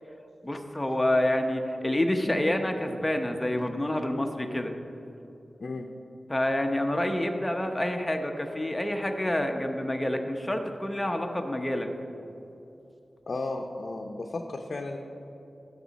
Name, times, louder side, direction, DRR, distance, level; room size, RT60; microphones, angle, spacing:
voice 1, 0.4-4.7 6.3-11.9, left 1 dB, 15° left, 4 dB, 0.8 m, -28 dB
voice 2, 13.3-15.0, left 2 dB, 60° left, 2 dB, 0.6 m, -34 dB
15.5 x 6.4 x 4.1 m, 2.9 s
wide cardioid pair, 100°, 0 cm